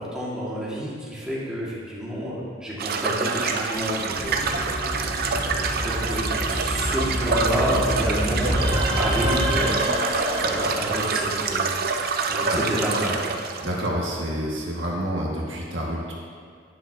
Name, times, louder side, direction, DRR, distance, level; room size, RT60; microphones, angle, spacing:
voice 1, 0.0-4.8 5.2-5.6 5.8-11.8 12.3-13.3, equal, 5° right, -8 dB, 1.8 m, -29 dB
sound 1, 2.8-13.9, right 4 dB, 50° right, 0.6 m, -27 dB
sound 2, 4.1-9.7, equal, 20° left, 2.1 m, -29 dB
sound 3, 8.4-12.0, right 1 dB, 30° right, 1.4 m, -28 dB
voice 2, 13.6-16.1, equal, 75° right, -3 dB, 1.7 m, -28 dB
11.5 x 9.4 x 2.8 m, 2.1 s
head